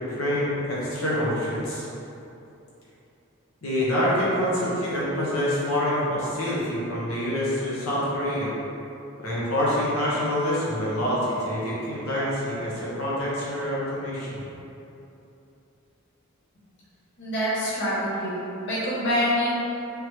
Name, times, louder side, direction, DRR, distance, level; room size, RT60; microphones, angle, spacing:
voice 1, 0.1-1.9 3.6-8.5 9.2-14.3, equal, 80° left, -8 dB, 1.0 m, -26 dB
voice 2, 17.2-18.3 18.6-19.5, equal, 55° left, -10 dB, 0.8 m, -25 dB
3.7 x 3.1 x 3.1 m, 2.9 s
head